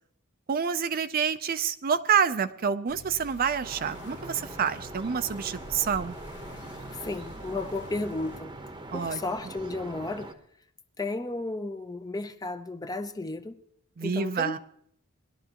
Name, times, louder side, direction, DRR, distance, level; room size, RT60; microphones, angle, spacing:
voice 1, 0.5-6.1 8.9-9.2 14.0-14.6, right 7 dB, 45° right, 11 dB, 0.5 m, -27 dB
sound 1, 2.9-8.4, left 2 dB, 55° left, 1.1 m, -47 dB
sound 2, 3.6-10.3, right 2 dB, 20° right, 0.9 m, -42 dB
voice 2, 6.9-8.5 8.9-10.3 11.0-13.6 14.0-14.6, left 2 dB, 15° left, 9 dB, 0.6 m, -33 dB
19.5 x 12.0 x 2.9 m, 0.67 s
head